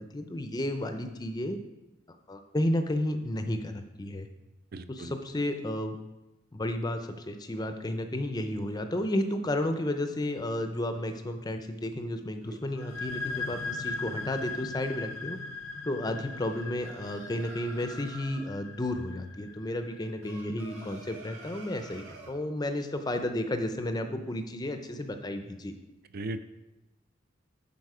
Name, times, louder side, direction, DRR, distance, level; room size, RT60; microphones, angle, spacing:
voice 1, 0.0-1.6 2.3-4.3 4.9-6.0 6.5-15.4 15.8-25.7, left 1 dB, 20° left, 7 dB, 0.5 m, -32 dB
voice 2, 4.7-5.1 26.1-26.5, right 2 dB, 45° right, 11 dB, 0.4 m, -37 dB
sound 1, 12.4-14.4 16.4-18.5 20.2-22.4, right 3 dB, 75° right, 1.9 m, -49 dB
sound 2, 12.7-20.2, left 4 dB, 80° left, 0.5 m, -39 dB
11.0 x 4.2 x 4.8 m, 1.0 s
head